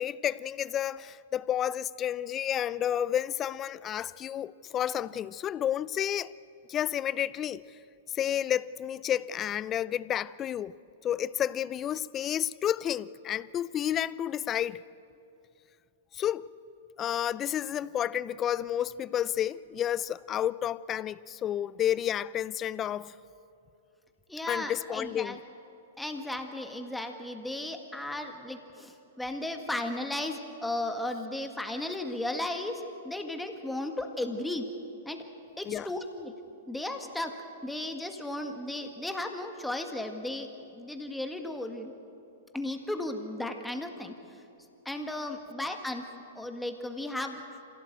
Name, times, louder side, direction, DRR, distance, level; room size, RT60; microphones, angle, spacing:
voice 1, 0.0-6.3 6.7-7.6 8.2-10.7 11.0-14.8 16.1-16.4 17.0-23.1 24.5-25.4 35.7-35.9, left 10 dB, 25° left, 0.5 m, -31 dB
voice 2, 24.3-25.4 26.0-34.6 35.1-35.2 35.6-36.3 36.7-37.4 37.6-40.5 40.7-41.9 42.5-44.1 44.9-46.1 46.4-47.4, left 1 dB, 5° left, 1.8 m, -35 dB
26.0 x 16.5 x 7.9 m
hypercardioid pair, 110°, 0 cm